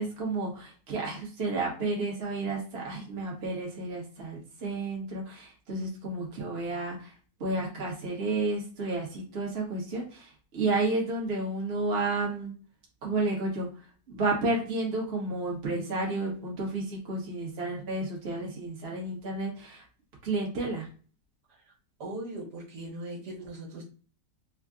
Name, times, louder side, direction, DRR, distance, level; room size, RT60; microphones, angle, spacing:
voice 1, 0.0-7.1 7.4-12.5 13.0-13.7 14.1-19.8 20.2-20.9, right 2 dB, 40° right, -2 dB, 1.1 m, -31 dB
voice 2, 22.0-23.8, right 1 dB, 70° right, -2 dB, 1.7 m, -39 dB
3.5 x 2.2 x 3.6 m, 0.38 s
omnidirectional pair, 1.9 m